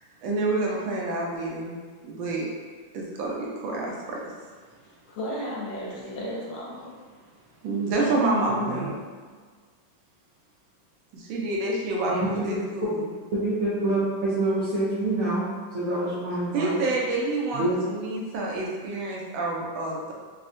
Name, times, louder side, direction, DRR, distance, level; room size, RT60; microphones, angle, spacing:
voice 1, 0.2-1.8 2.0-2.5 2.9-4.2 7.6-9.0 11.1-13.1 16.5-20.1, right 2 dB, 90° right, -3 dB, 1.4 m, -28 dB
voice 2, 4.8-6.9, equal, 75° left, -4 dB, 1.3 m, -34 dB
voice 3, 8.5-8.9 12.1-12.6 13.3-16.8 17.5-17.8, right 2 dB, 70° right, -9 dB, 0.8 m, -27 dB
3.6 x 2.1 x 2.5 m, 1.5 s
omnidirectional pair, 2.1 m